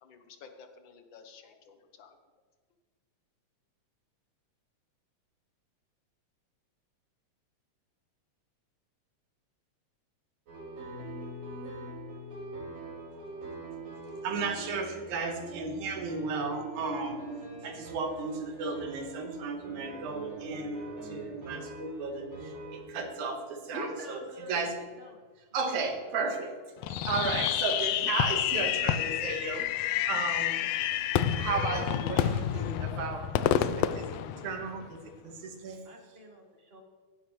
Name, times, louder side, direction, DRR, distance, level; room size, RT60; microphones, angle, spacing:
voice 1, 0.0-2.2, left 5 dB, 70° left, 6 dB, 1.1 m, -53 dB
sound 1, 10.5-22.8, right 2 dB, 60° right, 5.5 m, -43 dB
voice 2, 14.2-17.3 17.6-24.2 24.5-24.8 25.5-26.5 26.9-29.7 30.1-30.6 31.4-35.8, right 4 dB, 90° right, 4 dB, 2.8 m, -34 dB
voice 3, 23.7-24.6 25.0-25.3 25.7-26.2 35.8-36.8, equal, 30° right, 1 dB, 1.2 m, -44 dB
Fireworks, 26.8-35.0, left 11 dB, 85° left, 1.3 m, -29 dB
15.5 x 10.5 x 3.2 m, 1.4 s
omnidirectional pair, 3.3 m